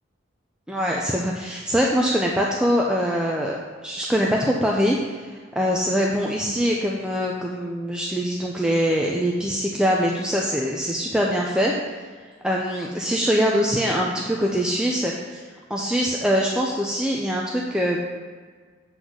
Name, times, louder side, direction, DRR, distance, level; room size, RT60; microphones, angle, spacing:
voice 1, 0.7-3.6 3.8-11.7 12.4-15.4 15.7-18.0, equal, 5° right, -2 dB, 0.5 m, -23 dB
8.1 x 4.0 x 6.1 m, 1.5 s
head